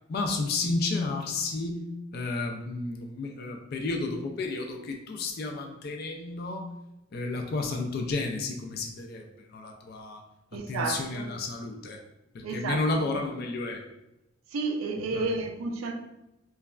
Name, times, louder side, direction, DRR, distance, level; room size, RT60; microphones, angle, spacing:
voice 1, 0.1-1.9 2.1-6.7 7.1-10.2 10.7-12.0 12.3-13.8 15.1-15.3, left 3 dB, 50° left, 3 dB, 0.3 m, -32 dB
voice 2, 10.5-11.3 12.4-13.1 14.5-15.9, right 3 dB, 90° right, 4 dB, 0.4 m, -31 dB
3.1 x 2.3 x 2.2 m, 0.92 s
head